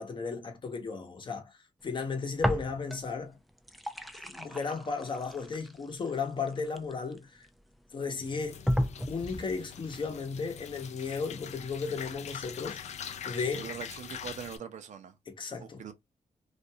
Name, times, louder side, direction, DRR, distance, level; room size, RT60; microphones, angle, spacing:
voice 1, 0.0-3.4 4.2-7.5 7.9-8.6 9.1-12.8 13.2-13.7 15.3-15.8, left 4 dB, 40° left, 0.9 m, -35 dB
sound 1, 2.4-3.2 3.5-7.5 8.0-8.1 8.7-9.5, equal, ahead, 0.4 m, -33 dB
sound 2, 8.2-14.6, left 8 dB, 65° left, 0.4 m, -43 dB
voice 2, 13.6-15.1 15.6-15.9, right 8 dB, 70° right, 0.6 m, -42 dB
2.5 x 2.3 x 2.7 m
cardioid pair, 95°, 13 cm